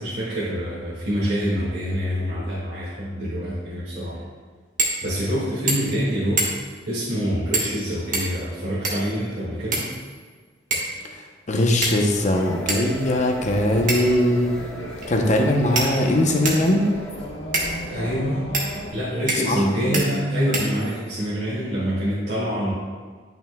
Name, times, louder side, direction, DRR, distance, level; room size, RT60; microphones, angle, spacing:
voice 1, 0.0-4.2 5.0-6.4 6.8-9.9 10.9-11.1 17.9-18.5 18.9-22.7, equal, 60° right, -11 dB, 1.8 m, -26 dB
sound 1, 4.8-5.0 5.3-5.4 5.7-6.0 6.4-6.8 7.5-7.8 8.1-9.1 9.7-10.3 10.7-11.0 11.8-12.2 12.7-12.8 13.9-14.2 15.0-15.1 15.7-16.7 17.5-17.7 18.5-18.7 19.3-19.6 19.9-20.1 20.5-21.1, right 2 dB, 45° right, 1.2 m, -26 dB
voice 2, 11.1-14.6 15.1-16.9 19.4-19.6 19.9-20.0, left 1 dB, 40° left, 2 dB, 0.7 m, -21 dB
sound 2, 12.1-18.9, left 1 dB, 70° left, 1.9 m, -36 dB
sound 3, 12.3-17.2, right 2 dB, 5° left, 0.7 m, -40 dB
9.0 x 5.9 x 2.2 m, 1.5 s
head